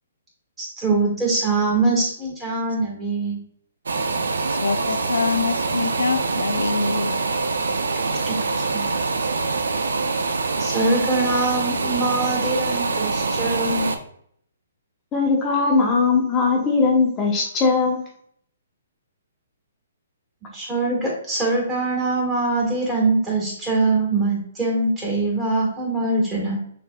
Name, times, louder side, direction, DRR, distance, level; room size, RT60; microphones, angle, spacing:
voice 1, 0.6-3.4 8.1-8.8 10.6-13.9 20.5-26.6, right 3 dB, 10° right, -4 dB, 1.7 m, -23 dB
sound 1, 3.9-14.0, right 3 dB, 80° right, 0.5 m, -24 dB
voice 2, 4.6-7.2 8.1-8.2 8.5-8.6, left 4 dB, 85° left, 9 dB, 0.4 m, -25 dB
voice 3, 15.1-18.0, left 4 dB, 20° left, -1 dB, 0.9 m, -19 dB
6.5 x 2.6 x 2.3 m, 0.66 s
hypercardioid pair, 145°, 0 cm